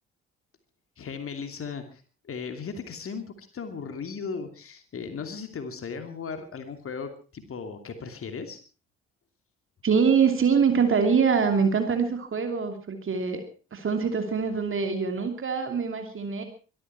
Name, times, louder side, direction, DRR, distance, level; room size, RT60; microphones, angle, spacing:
voice 1, 1.0-8.6, left 5 dB, 45° left, 7 dB, 2.7 m, -37 dB
voice 2, 9.8-13.4 13.7-16.4, right 6 dB, 40° right, 6 dB, 2.8 m, -24 dB
24.0 x 12.5 x 4.5 m, 0.37 s
figure-of-eight pair, 40°, 32 cm